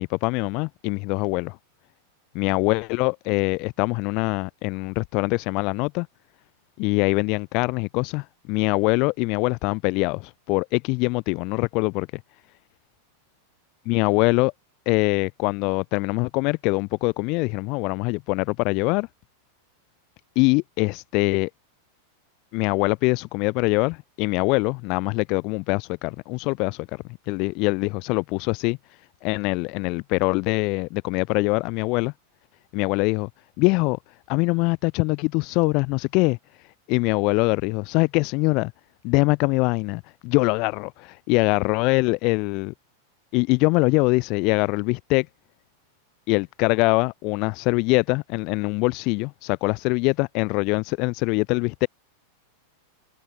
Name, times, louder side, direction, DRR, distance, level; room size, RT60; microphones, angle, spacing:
voice 1, 0.0-1.5 2.3-6.1 6.8-12.1 13.9-14.5 14.9-19.1 20.4-21.5 22.5-26.8 27.3-28.8 29.2-32.1 32.7-33.3 33.6-34.0 34.3-36.4 36.9-38.7 39.0-42.7 43.3-45.3 46.3-51.9, left 28 dB, 45° left, 1.0 m, -23 dB
figure-of-eight pair, 90°, 0 cm